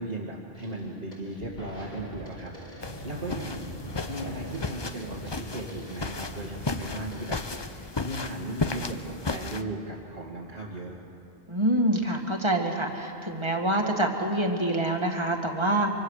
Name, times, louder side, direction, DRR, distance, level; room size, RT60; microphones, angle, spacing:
voice 1, 0.0-3.7 4.1-11.0, right 1 dB, 60° right, -5 dB, 2.2 m, -37 dB
sound 1, 0.5-0.8 1.1-7.4, left 1 dB, 45° left, 5.3 m, -42 dB
sound 2, 2.8-9.6, left 3 dB, 25° left, 0.8 m, -34 dB
voice 2, 11.5-15.9, right 1 dB, 25° right, 2 dB, 2.1 m, -26 dB
25.5 x 24.5 x 6.5 m, 2.7 s
omnidirectional pair, 1.1 m